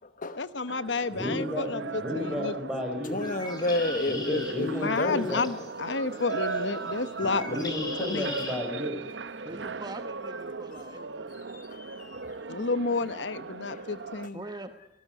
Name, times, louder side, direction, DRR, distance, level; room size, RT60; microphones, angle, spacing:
voice 1, 0.4-2.5 4.8-8.3 12.5-14.4, left 3 dB, 85° left, 1.0 m, -31 dB
sound 1, 0.7-14.3, right 4 dB, 85° right, 0.9 m, -38 dB
voice 2, 1.1-3.3 4.1-5.4 7.2-9.0, left 1 dB, 5° right, 6.4 m, -33 dB
voice 3, 3.1-5.5 10.7-11.1 11.5-12.2 13.7-13.8, left 2 dB, 50° left, 1.1 m, -31 dB
Bird, 3.1-8.6, left 2 dB, 25° left, 5.5 m, -41 dB
voice 4, 9.4-11.3 14.3-14.7, right 2 dB, 25° right, 1.1 m, -42 dB
20.5 x 18.5 x 9.4 m
head